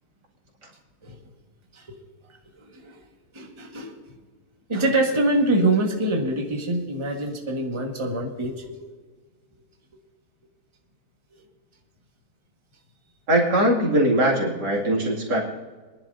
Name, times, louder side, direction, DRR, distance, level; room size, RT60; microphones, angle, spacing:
voice 1, 2.6-3.0 3.3-4.0 4.7-8.9, right 2 dB, 20° right, 1 dB, 1.5 m, -25 dB
voice 2, 13.3-15.4, right 1 dB, 90° right, -2 dB, 3.0 m, -21 dB
23.5 x 11.0 x 2.7 m, 1.3 s
omnidirectional pair, 1.8 m